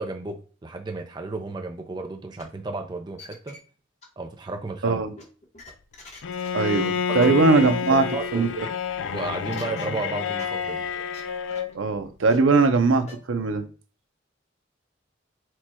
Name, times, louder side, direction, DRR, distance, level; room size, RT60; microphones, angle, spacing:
voice 1, 0.0-3.6 4.2-5.0 7.1-7.7 8.1-8.6 9.1-10.9 12.5-12.7, right 3 dB, 20° right, 0.4 m, -33 dB
sound 1, 2.4-2.5 2.9-3.6 4.0-4.1 5.2-6.5 6.8-6.9 7.2-7.3 7.5-7.6 7.8-8.0 9.5-9.9 10.4-10.5 10.9-11.2 11.5-11.7 12.3-12.4 13.1-13.2, left 3 dB, 35° left, 1.0 m, -44 dB
voice 2, 4.8-5.1 6.5-8.1 8.3-8.5 11.7-13.7, right 3 dB, 90° right, 0.6 m, -20 dB
Bowed string instrument, 6.2-11.7, left 6 dB, 80° left, 0.4 m, -29 dB
4.4 x 2.3 x 4.3 m
head